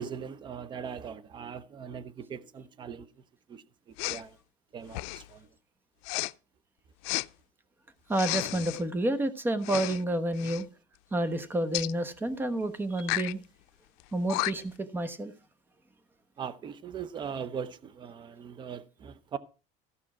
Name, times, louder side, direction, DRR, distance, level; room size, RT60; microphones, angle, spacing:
voice 1, 0.0-3.1 3.5-3.6 4.1-4.3 4.7-5.0 5.3-5.4 16.4-19.4, right 7 dB, 30° right, 0.8 m, -39 dB
Respiratory sounds, 4.0-4.2 4.9-5.3 6.0-6.3 7.0-7.3 8.1-8.8 9.6-10.0 10.3-10.6 11.7-11.9 13.0-13.3 14.0-14.1 14.3-14.8, left 22 dB, 85° left, 0.5 m, -32 dB
voice 2, 8.1-10.7 11.1-13.4 14.1-15.3, right 1 dB, 15° right, 1.1 m, -29 dB
15.0 x 5.5 x 6.1 m
cardioid pair, 145°, 16 cm